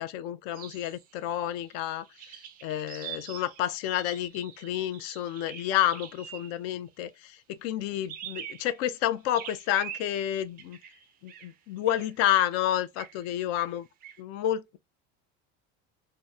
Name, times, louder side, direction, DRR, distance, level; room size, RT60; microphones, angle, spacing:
voice 1, 0.0-2.0 2.6-10.8 11.2-13.8 14.2-14.8, left 12 dB, 55° left, 0.4 m, -30 dB
sound 1, 0.5-6.8 8.0-9.0 9.3-11.5 11.9-12.1 13.0-13.3 13.5-14.2, right 9 dB, 30° right, 0.4 m, -45 dB
2.8 x 2.1 x 3.5 m
cardioid pair, 165°, 31 cm